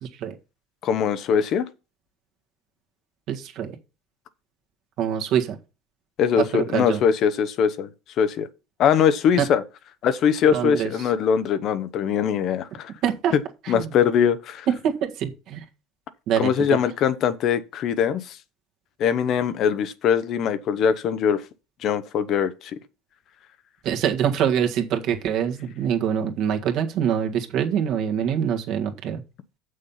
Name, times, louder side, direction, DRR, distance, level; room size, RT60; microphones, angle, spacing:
voice 1, 0.0-0.3 3.3-3.7 5.0-5.6 6.4-7.0 10.5-10.9 13.0-13.3 13.6-13.9 14.8-15.6 16.3-16.5 23.8-29.2, right 9 dB, 55° right, 1.7 m, -25 dB
voice 2, 0.8-1.7 6.2-7.9 8.2-8.5 8.8-9.6 10.0-12.9 13.7-14.7 16.4-18.4 19.0-21.4 21.8-22.8, left 8 dB, 45° left, 0.8 m, -22 dB
7.3 x 6.4 x 5.6 m
cardioid pair, 135°, 0 cm